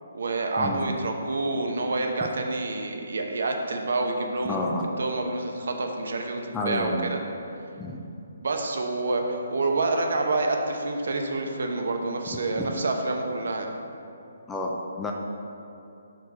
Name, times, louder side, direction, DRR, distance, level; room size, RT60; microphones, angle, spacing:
voice 1, 0.1-4.6 5.0-7.2 8.4-13.7, right 2 dB, 70° right, 3 dB, 0.8 m, -28 dB
voice 2, 4.5-4.8 6.5-7.1 7.8-8.0 12.6-12.7 14.5-14.7 15.0-15.1, left 2 dB, 10° left, -1 dB, 0.4 m, -29 dB
4.6 x 4.6 x 5.8 m, 2.7 s
hypercardioid pair, 160°, 0 cm